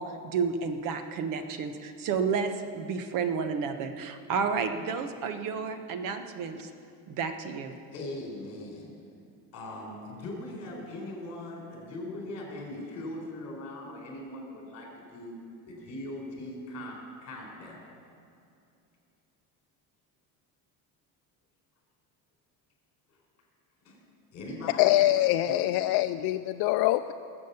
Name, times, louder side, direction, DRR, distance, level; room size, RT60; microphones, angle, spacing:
voice 1, 0.0-6.7 7.1-7.8, right 5 dB, 55° right, 8 dB, 1.2 m, -31 dB
voice 2, 7.9-8.9 9.5-15.4 15.7-17.9 23.8-24.0 24.3-24.9 25.5-25.6, left 1 dB, 40° left, -1 dB, 4.1 m, -40 dB
voice 3, 24.8-27.1, left 15 dB, 75° left, 7 dB, 0.5 m, -24 dB
20.0 x 7.7 x 6.9 m, 2.6 s
cardioid pair, 170°, 38 cm